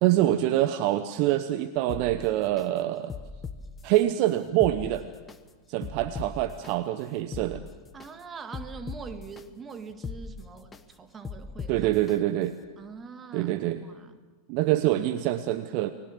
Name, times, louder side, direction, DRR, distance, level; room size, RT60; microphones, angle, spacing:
voice 1, 0.0-3.1 3.8-5.0 5.7-7.6 11.7-12.5 13.3-13.8 14.5-15.9, right 14 dB, 45° right, 12 dB, 0.9 m, -25 dB
sound 1, 1.9-2.7 3.1-4.0 4.5-5.4 5.8-6.7 7.2-8.1 8.5-9.4 9.9-10.8 11.2-12.2 12.6-12.7, left 5 dB, 15° left, 1.2 m, -39 dB
voice 2, 7.9-11.7 12.8-13.5 13.8-14.2, right 5 dB, 20° right, 9 dB, 1.9 m, -43 dB
29.5 x 20.0 x 7.3 m, 1.3 s
figure-of-eight pair, 90°, 0 cm